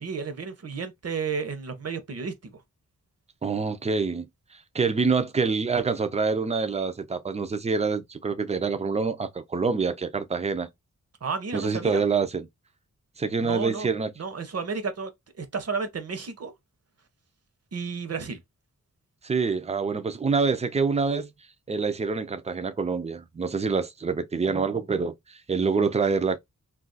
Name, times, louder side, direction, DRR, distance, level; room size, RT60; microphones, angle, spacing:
voice 1, 0.0-2.5 11.2-12.0 13.4-13.9 14.2-15.1 15.4-16.5 17.7-18.4, right 5 dB, 50° right, 0.7 m, -32 dB
voice 2, 3.4-4.3 4.7-10.7 11.5-12.5 13.2-14.1 19.2-21.3 21.7-26.4, right 4 dB, 20° right, 0.4 m, -26 dB
2.4 x 2.3 x 3.8 m
wide cardioid pair, 130°, 32 cm